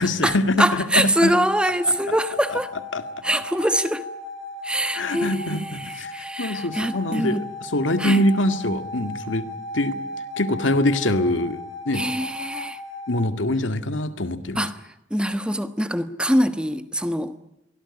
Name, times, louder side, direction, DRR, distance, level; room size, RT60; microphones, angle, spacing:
voice 1, 0.0-1.4 1.8-1.9 2.5-2.6 2.9-3.0 4.9-9.5 9.7-10.0 10.4-11.6 11.9-12.1 13.1-14.7, left 1 dB, 90° left, 2.0 m, -24 dB
voice 2, 0.6-2.7 3.2-4.0 4.6-7.4 8.0-8.2 11.9-12.8 14.6-14.7 15.1-17.3, equal, 5° right, 1.3 m, -23 dB
sound 1, 1.6-13.3, left 2 dB, 70° right, 5.5 m, -36 dB
23.5 x 18.0 x 9.8 m
head